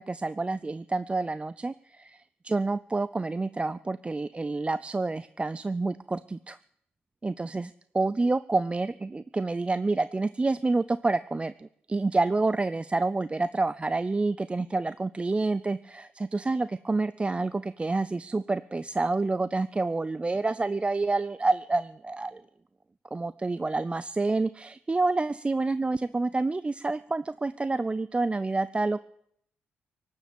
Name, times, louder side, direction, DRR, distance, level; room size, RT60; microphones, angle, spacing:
voice 1, 0.0-6.6 7.2-22.4 23.1-29.0, right 3 dB, 25° right, 15 dB, 0.5 m, -28 dB
18.0 x 7.2 x 9.1 m, 0.69 s
supercardioid pair, 55°, 5 cm